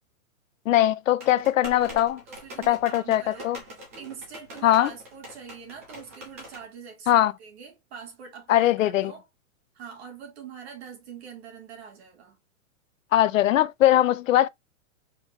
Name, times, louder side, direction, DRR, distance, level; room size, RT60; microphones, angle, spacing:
voice 1, 0.7-2.2 2.7-3.6 4.6-4.9 7.1-7.3 8.5-9.1 13.1-14.5, left 13 dB, 65° left, 0.5 m, -21 dB
sound 1, 1.2-6.6, equal, 10° right, 0.4 m, -44 dB
voice 2, 2.3-3.6 4.0-9.3 9.7-12.4, right 7 dB, 50° right, 2.5 m, -44 dB
4.7 x 3.8 x 2.7 m
supercardioid pair, 175°, 42 cm